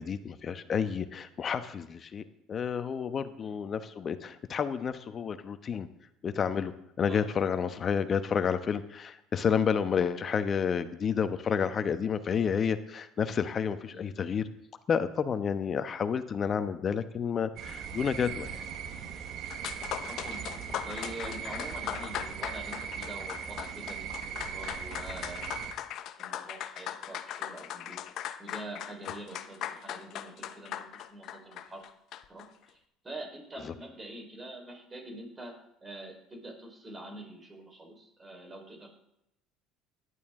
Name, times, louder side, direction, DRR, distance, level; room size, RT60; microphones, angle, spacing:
voice 1, 0.0-5.9 6.2-6.7 7.0-14.5 14.9-18.6, left 7 dB, 40° left, 10 dB, 1.1 m, -30 dB
sound 1, 17.6-25.7, right 8 dB, 60° right, 1.5 m, -39 dB
sound 2, 19.5-32.5, left 11 dB, 60° left, 0.9 m, -39 dB
voice 2, 20.0-25.5 26.1-31.9 32.3-32.8 33.0-38.9, right 1 dB, 20° right, 2 dB, 4.5 m, -45 dB
17.0 x 11.0 x 3.8 m, 0.82 s
supercardioid pair, 95°, 0 cm